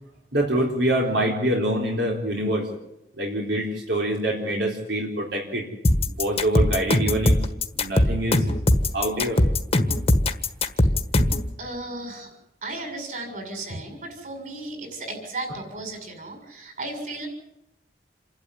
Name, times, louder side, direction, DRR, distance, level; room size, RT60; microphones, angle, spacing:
voice 1, 0.3-2.7 3.2-5.6 6.2-7.3 7.8-8.4 8.9-9.4, right 1 dB, 85° right, -1 dB, 4.1 m, -25 dB
sound 1, 5.8-11.5, left 1 dB, 35° left, 1.5 m, -20 dB
voice 2, 11.6-12.3 12.6-17.3, right 2 dB, 50° right, 4 dB, 6.8 m, -35 dB
28.5 x 12.0 x 9.9 m, 0.83 s
head